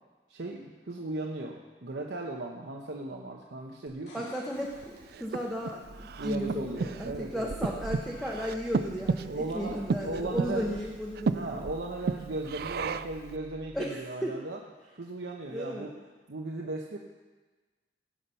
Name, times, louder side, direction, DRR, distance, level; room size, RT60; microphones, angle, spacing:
voice 1, 0.3-4.2 6.2-7.5 9.3-10.8 11.3-14.6 15.0-15.9 16.3-17.0, right 2 dB, 80° right, 0 dB, 0.9 m, -37 dB
sound 1, 3.9-5.8 9.5-9.6, left 1 dB, 80° left, 2.8 m, -54 dB
voice 2, 4.1-11.7 13.7-14.4 15.5-15.9, equal, ahead, -3 dB, 0.9 m, -35 dB
Breathing, 4.7-13.3, right 4 dB, 55° right, 0.3 m, -34 dB
sound 2, 5.8-13.8, equal, 40° left, 3.6 m, -51 dB
16.5 x 5.8 x 5.6 m, 1.3 s
head